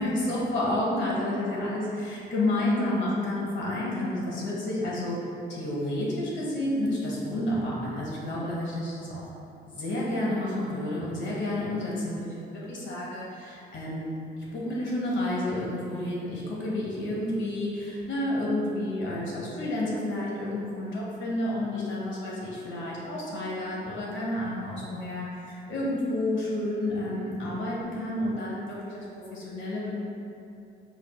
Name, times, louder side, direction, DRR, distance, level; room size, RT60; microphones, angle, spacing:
voice 1, 0.0-5.2 5.5-9.3 9.7-29.1 29.3-29.9, left 1 dB, 70° left, -5 dB, 0.9 m, -30 dB
4.5 x 2.0 x 2.3 m, 2.7 s
cardioid pair, 90°, 20 cm